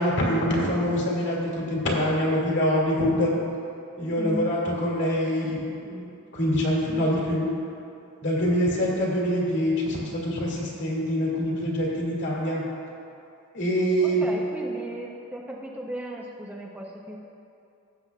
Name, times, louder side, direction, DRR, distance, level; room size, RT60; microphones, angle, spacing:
voice 1, 0.0-3.3 4.0-6.1 6.3-7.5 8.2-12.6 13.5-14.2, equal, 55° left, -4 dB, 2.2 m, -25 dB
voice 2, 4.2-4.5 14.0-17.2, equal, 10° right, -2 dB, 0.6 m, -36 dB
17.0 x 7.5 x 2.3 m, 2.6 s
head